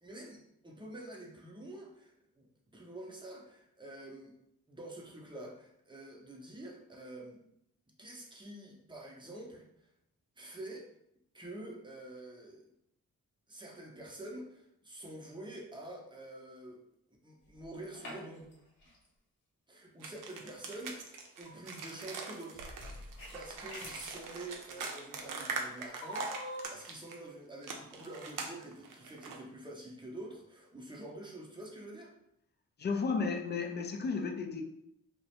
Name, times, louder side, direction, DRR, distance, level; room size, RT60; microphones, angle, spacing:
voice 1, 0.0-2.5 2.7-4.3 4.7-7.4 8.0-9.9 10.4-10.9 11.3-12.6 13.5-16.8 17.2-18.5 19.7-32.1, right 1 dB, 15° right, -2 dB, 0.7 m, -47 dB
sound 1, 17.5-18.5 18.8-19.0 20.3-20.4 21.2-21.7 22.5-24.2 26.0-26.7, left 1 dB, 65° left, 0.9 m, -44 dB
sound 2, 20.0-27.2 27.6-29.4, right 4 dB, 65° right, 0.5 m, -42 dB
voice 2, 32.8-34.6, left 4 dB, 30° left, 5 dB, 0.4 m, -33 dB
2.3 x 2.1 x 2.9 m, 0.77 s
supercardioid pair, 55°, 35 cm